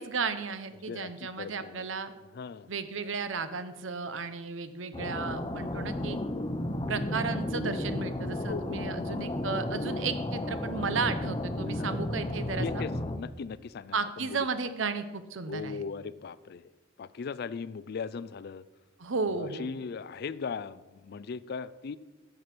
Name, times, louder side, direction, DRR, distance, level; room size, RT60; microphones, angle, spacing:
voice 1, 0.0-2.1 2.7-6.2 6.9-12.7 13.9-15.8 19.0-19.8, right 4 dB, 85° right, 11 dB, 0.8 m, -34 dB
voice 2, 0.9-1.9 2.3-2.7 8.3-9.1 11.8-12.0 12.5-14.5 15.5-16.7 17.0-18.6 19.3-22.0, left 5 dB, 55° left, 17 dB, 0.4 m, -38 dB
sound 1, 4.9-13.2, left 1 dB, 25° left, 0.7 m, -33 dB
10.5 x 6.9 x 6.0 m, 1.2 s
head